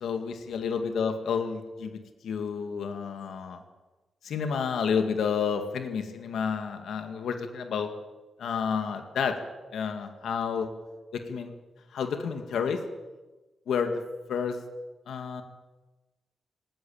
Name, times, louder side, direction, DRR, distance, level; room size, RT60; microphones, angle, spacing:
voice 1, 0.0-3.6 4.2-7.9 8.4-9.4 9.7-10.7 11.1-11.5 11.9-12.8 13.7-13.9 14.3-14.6 15.1-15.4, left 6 dB, 75° left, 6 dB, 2.1 m, -30 dB
19.0 x 18.0 x 8.7 m, 1.2 s
wide cardioid pair, 175°, 0 cm